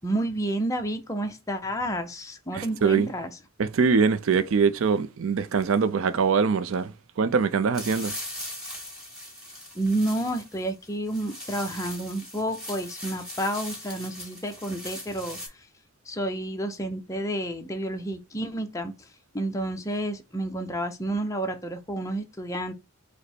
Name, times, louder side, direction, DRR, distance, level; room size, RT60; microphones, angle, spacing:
voice 1, 0.0-3.3 9.7-15.7 16.1-22.7, right 1 dB, 15° left, 0.6 m, -30 dB
voice 2, 2.5-3.1 3.6-8.1, right 5 dB, 65° right, 0.4 m, -23 dB
sound 1, 7.7-15.5, left 1 dB, 5° right, 2.2 m, -40 dB
5.0 x 2.1 x 4.3 m
head